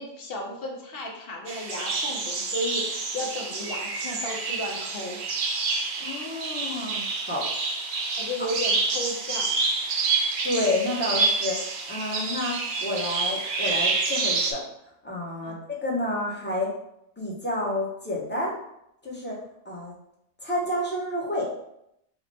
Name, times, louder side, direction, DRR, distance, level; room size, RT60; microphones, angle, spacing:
voice 1, 0.0-5.2 8.2-9.5 15.4-15.6, left 1 dB, 60° left, 0 dB, 0.9 m, -34 dB
sound 1, 1.5-14.5, right 3 dB, 60° right, 0.6 m, -28 dB
voice 2, 6.0-7.4 10.4-11.6 11.9-14.6 15.0-16.7 17.2-18.5 19.0-19.4 19.6-19.9 20.4-21.5, left 1 dB, 10° left, -5 dB, 0.8 m, -29 dB
3.3 x 2.1 x 4.0 m, 0.78 s
omnidirectional pair, 1.2 m